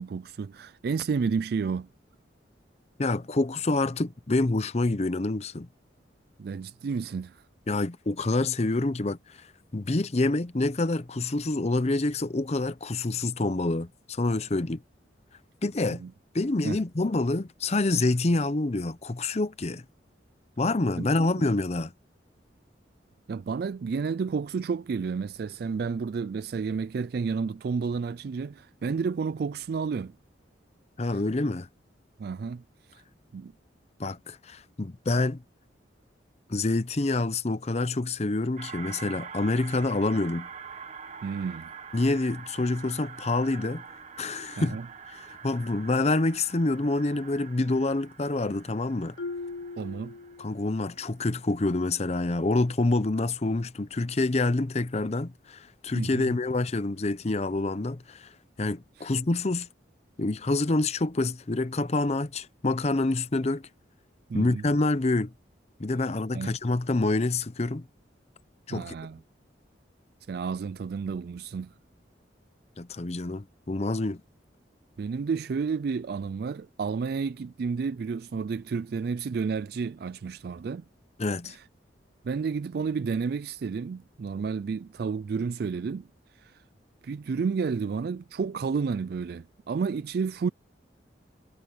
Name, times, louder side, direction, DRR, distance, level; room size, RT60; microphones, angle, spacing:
voice 1, 0.0-1.9 6.4-7.4 15.9-16.1 16.6-16.8 21.0-21.1 23.3-30.1 32.2-33.0 33.3-33.5 41.2-41.7 44.6-44.9 49.8-50.1 55.9-56.4 59.0-59.1 64.3-64.6 66.3-66.5 68.7-69.2 70.3-71.7 75.0-80.8 81.4-81.6 82.2-86.1 86.3-86.6 87.0-90.5, right 5 dB, 55° right, 0.3 m, -31 dB
voice 2, 3.0-5.7 7.7-9.5 9.7-14.8 15.6-16.0 16.3-19.8 20.6-21.9 31.0-31.7 34.0-35.4 36.5-40.5 41.9-43.8 44.2-44.8 45.1-49.2 50.4-58.3 58.6-59.7 60.2-63.6 64.3-65.3 65.8-67.9 68.7-68.9 72.8-74.2 81.2-81.6, left 2 dB, 35° left, 0.7 m, -27 dB
sound 1, 38.6-51.3, right 6 dB, 40° right, 1.5 m, -45 dB
Marimba xylophone, 49.2-50.9, left 3 dB, 70° left, 0.9 m, -39 dB
head